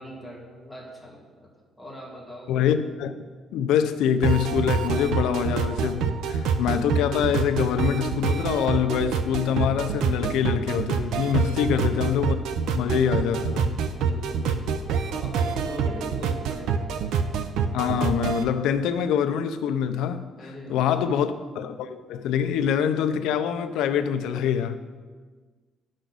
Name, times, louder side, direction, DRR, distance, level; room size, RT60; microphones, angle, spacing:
voice 1, 0.0-1.5 1.8-2.5 11.4-12.0 13.9-17.0 20.4-21.2, equal, ahead, -3 dB, 1.9 m, -41 dB
voice 2, 2.5-3.1 3.5-12.4 12.7-13.8 17.7-20.3 20.7-24.8, left 8 dB, 90° left, 10 dB, 0.6 m, -25 dB
sound 1, 4.2-18.4, right 6 dB, 75° right, 0.6 m, -26 dB
11.5 x 6.3 x 4.0 m, 1.5 s
cardioid pair, 150°, 0 cm